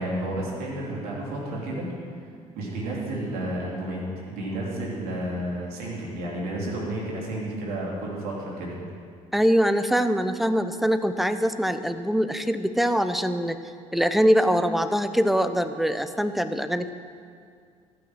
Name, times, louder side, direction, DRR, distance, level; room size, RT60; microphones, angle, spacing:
voice 1, 0.0-1.9 2.5-8.7, right 1 dB, 60° right, -4 dB, 3.1 m, -31 dB
voice 2, 9.3-13.6 13.9-16.9, equal, ahead, 10 dB, 0.6 m, -23 dB
13.5 x 6.1 x 6.2 m, 2.2 s
hypercardioid pair, 55°, 17 cm